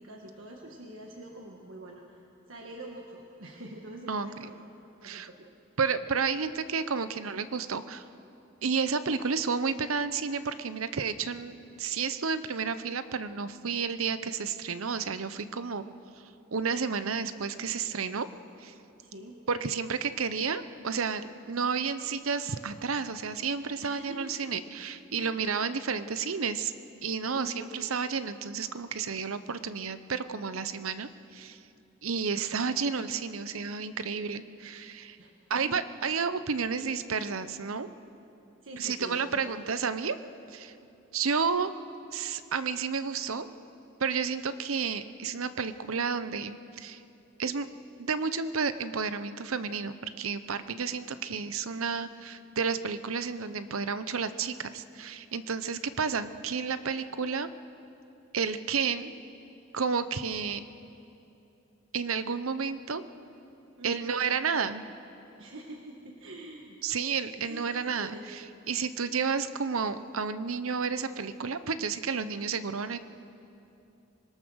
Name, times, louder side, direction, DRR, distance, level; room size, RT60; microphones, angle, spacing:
voice 1, 0.0-4.5 5.0-5.5 19.0-19.4 23.8-24.3 25.2-25.4 27.3-27.7 35.2-35.8 38.6-39.6 63.8-64.1 65.4-66.8 67.5-68.6, right 1 dB, 65° right, 0 dB, 1.7 m, -45 dB
voice 2, 4.1-4.5 5.0-5.3 5.8-8.0 8.6-15.9 16.5-18.3 18.6-18.7 19.5-26.7 27.0-31.6 32.0-35.2 35.5-37.9 38.8-40.2 40.5-40.7 41.1-41.7 42.1-43.5 44.0-47.0 47.4-47.7 48.0-57.5 58.3-59.1 59.7-60.6 61.9-63.0 63.8-64.8 66.8-68.4 68.7-73.0, right 5 dB, 85° right, 12 dB, 0.8 m, -31 dB
25.5 x 21.0 x 6.4 m, 2.8 s
head